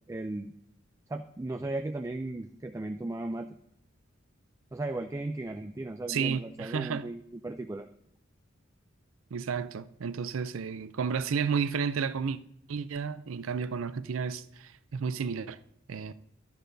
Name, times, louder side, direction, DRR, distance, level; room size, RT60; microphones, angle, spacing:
voice 1, 0.1-0.5 1.1-3.5 4.7-7.9, right 2 dB, 15° right, 0.3 m, -36 dB
voice 2, 6.1-7.1 9.3-12.4 12.7-15.6 15.9-16.1, right 6 dB, 90° right, 0.5 m, -32 dB
12.5 x 10.5 x 2.7 m
head